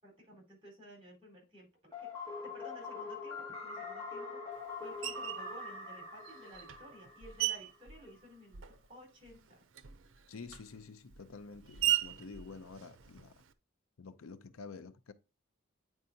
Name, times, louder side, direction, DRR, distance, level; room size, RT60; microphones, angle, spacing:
voice 1, 0.0-9.6, equal, 25° right, 3.9 m, -55 dB
sound 1, 1.9-7.8, left 3 dB, 15° left, 2.0 m, -43 dB
Screech, 5.0-5.5 6.2-9.0 9.2-13.5, right 13 dB, 70° right, 0.6 m, -38 dB
voice 2, 10.3-13.4 14.0-15.1, left 4 dB, 85° left, 0.6 m, -49 dB
8.9 x 4.7 x 2.7 m
head